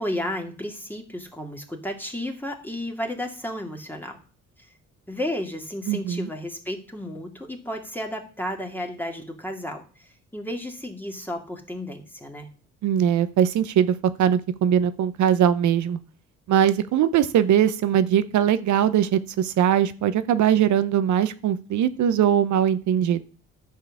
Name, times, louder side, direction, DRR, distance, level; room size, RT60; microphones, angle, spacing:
voice 1, 0.0-4.2 4.6-4.7 5.1-12.5, left 1 dB, 5° left, 2 dB, 2.2 m, -33 dB
voice 2, 5.9-6.3 12.8-16.0 16.5-23.2, right 9 dB, 70° right, 13 dB, 0.8 m, -21 dB
11.0 x 4.6 x 7.2 m, 0.39 s
cardioid pair, 90°, 30 cm